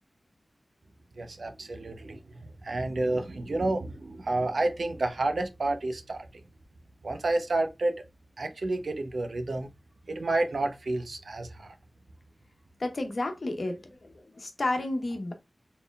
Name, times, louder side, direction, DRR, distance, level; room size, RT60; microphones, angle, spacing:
voice 1, 1.2-6.3 7.0-8.0 8.4-9.7 10.1-11.7, right 2 dB, 75° right, 0.7 m, -30 dB
voice 2, 12.8-15.3, left 2 dB, 60° left, 1.0 m, -31 dB
4.3 x 3.5 x 2.3 m
wide cardioid pair, 85°, 0 cm